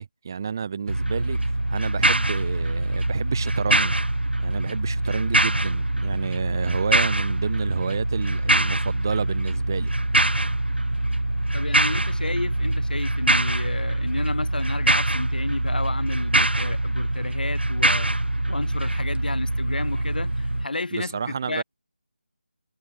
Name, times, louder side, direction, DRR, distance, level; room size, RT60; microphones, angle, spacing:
voice 1, 0.0-4.0 4.4-9.9 20.9-21.6, right 6 dB, 20° right, 0.4 m, -30 dB
sound 1, 0.9-20.7, right 1 dB, 80° right, 1.1 m, -24 dB
voice 2, 11.5-18.1 18.5-21.2 21.5-21.6, left 2 dB, 55° left, 1.2 m, -32 dB
figure-of-eight pair, 160°, 6 cm